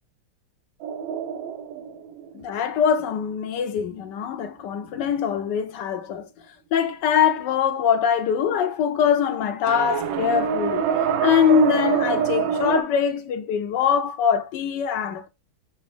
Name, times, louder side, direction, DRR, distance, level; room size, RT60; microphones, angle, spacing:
sound 1, 0.8-3.2 9.7-12.8, right 8 dB, 85° right, 1.4 m, -25 dB
voice 1, 2.3-6.3 6.7-10.8 11.2-15.3, left 8 dB, 70° left, 1.1 m, -23 dB
5.9 x 2.8 x 3.1 m
omnidirectional pair, 2.2 m